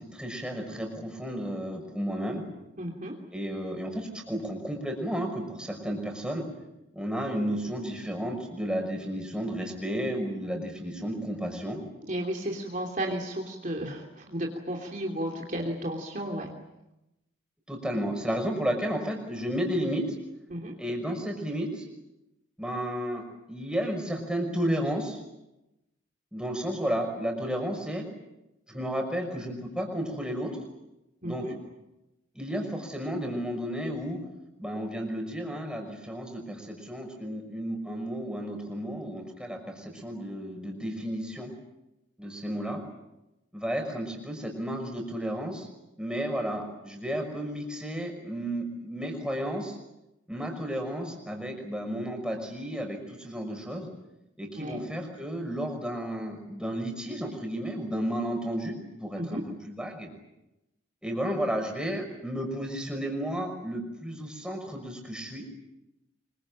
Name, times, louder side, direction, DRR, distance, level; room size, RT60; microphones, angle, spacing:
voice 1, 0.0-2.4 3.3-6.4 6.9-11.8 17.7-20.1 20.8-21.9 22.6-25.2 26.3-28.0 28.7-30.5 31.2-31.5 32.4-34.2 34.6-41.5 42.2-42.8 43.5-45.7 46.0-49.8 50.3-53.9 54.4-60.1 61.0-65.5, equal, 5° right, 2 dB, 5.9 m, -32 dB
voice 2, 2.8-3.1 12.1-16.5 20.5-20.7 31.2-31.5 54.6-54.9 59.2-59.4, right 1 dB, 40° right, 1 dB, 3.0 m, -33 dB
25.5 x 23.5 x 8.9 m, 0.93 s
head